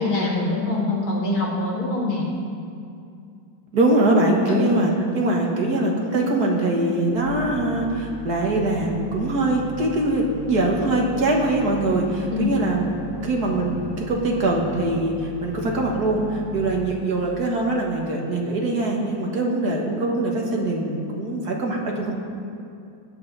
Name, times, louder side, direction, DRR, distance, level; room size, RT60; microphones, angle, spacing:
voice 1, 0.0-2.3 4.5-4.8 12.3-12.7, left 2 dB, 80° left, -4 dB, 3.1 m, -24 dB
voice 2, 3.7-12.9 13.2-22.1, right 2 dB, 55° right, 0 dB, 2.0 m, -22 dB
sound 1, 7.1-17.4, right 2 dB, 75° right, 2.5 m, -37 dB
21.5 x 8.3 x 4.0 m, 2.5 s
omnidirectional pair, 2.2 m